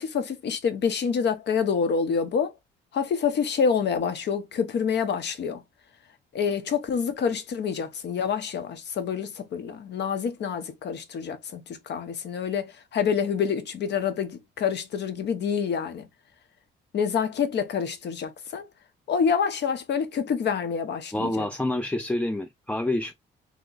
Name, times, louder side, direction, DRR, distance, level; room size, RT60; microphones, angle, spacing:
voice 1, 0.0-2.5 2.9-5.6 6.3-16.1 16.9-18.6 19.1-21.5, left 6 dB, 60° left, 0.8 m, -27 dB
voice 2, 21.1-23.1, left 1 dB, 5° left, 0.3 m, -27 dB
3.0 x 2.1 x 3.8 m
cardioid pair, 90°, 20 cm